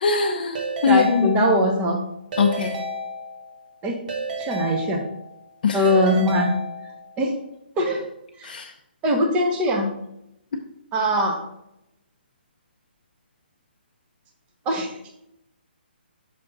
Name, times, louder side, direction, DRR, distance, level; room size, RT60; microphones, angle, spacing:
voice 1, 0.0-1.5 2.4-2.8 5.6-5.8 8.4-8.6, left 5 dB, 55° left, 2 dB, 0.6 m, -21 dB
Keyboard (musical) / Ringtone, 0.6-1.9 2.3-3.6 4.1-5.4 5.9-7.2, right 1 dB, 45° right, 1.2 m, -32 dB
voice 2, 0.8-2.0 3.8-4.0 4.4-5.0 5.7-6.5 7.2-7.3 7.8-8.0 8.4-8.5 9.0-9.9 10.9-11.4 14.7-14.9, equal, 20° right, 1 dB, 1.0 m, -21 dB
5.8 x 3.4 x 5.4 m, 0.80 s
hypercardioid pair, 150°, 6 cm